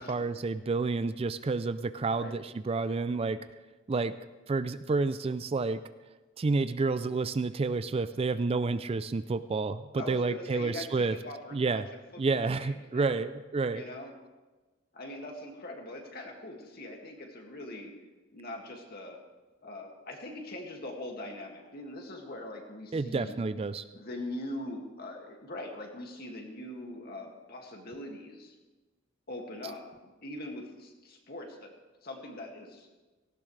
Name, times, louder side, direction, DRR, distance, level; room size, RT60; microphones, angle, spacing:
voice 1, 0.0-3.4 3.9-4.1 4.5-5.8 6.4-11.2 11.5-11.9 12.2-13.8 22.9-23.8, right 3 dB, 30° right, 13 dB, 0.4 m, -30 dB
voice 2, 10.0-11.8 12.1-13.2 13.7-14.1 14.9-17.9 18.3-19.2 19.6-23.3 23.9-28.6 29.3-31.7 32.0-32.9, left 1 dB, 50° left, 1 dB, 2.2 m, -42 dB
18.0 x 15.5 x 3.3 m, 1.2 s
head